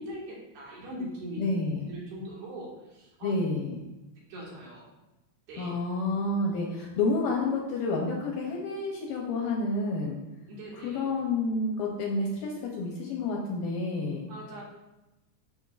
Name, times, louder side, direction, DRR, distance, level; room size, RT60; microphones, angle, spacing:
voice 1, 0.0-1.4 1.9-3.3 4.3-4.9 5.5-5.7 10.5-11.0 14.2-14.6, equal, 75° right, -6 dB, 4.0 m, -41 dB
voice 2, 1.4-1.9 3.2-3.8 5.6-10.2 10.7-14.3, left 3 dB, 75° left, -1 dB, 2.2 m, -29 dB
12.0 x 4.3 x 2.5 m, 1.0 s
omnidirectional pair, 4.7 m